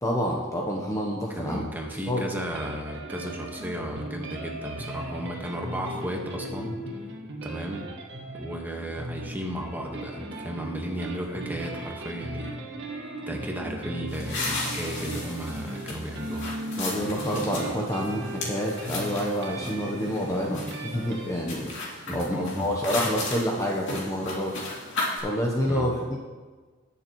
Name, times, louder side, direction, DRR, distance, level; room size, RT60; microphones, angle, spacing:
voice 1, 0.0-1.6 1.9-2.3 16.8-24.6 24.9-26.2, equal, 15° left, -1 dB, 0.8 m, -28 dB
voice 2, 1.4-6.8 7.4-7.9 8.3-12.6 13.3-16.6 22.1-22.7 25.7-25.9, right 1 dB, 10° right, 0 dB, 1.4 m, -34 dB
sound 1, 2.5-21.3, right 1 dB, 65° right, 1.5 m, -37 dB
sound 2, 14.1-25.2, left 2 dB, 65° left, 2.7 m, -35 dB
18.5 x 6.9 x 3.0 m, 1.4 s
head